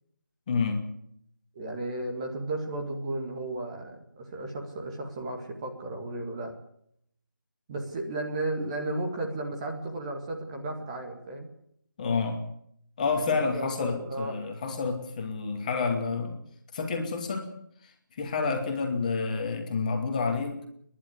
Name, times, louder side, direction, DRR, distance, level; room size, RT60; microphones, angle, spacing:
voice 1, 0.5-0.8 12.0-12.4 13.0-16.4 16.7-17.5 17.8-20.7, left 4 dB, 25° left, 3 dB, 2.5 m, -29 dB
voice 2, 1.5-6.5 7.7-11.5 13.3-14.4, right 2 dB, 20° right, 1 dB, 2.1 m, -34 dB
29.5 x 11.5 x 8.3 m, 0.71 s
figure-of-eight pair, 160°, 10 cm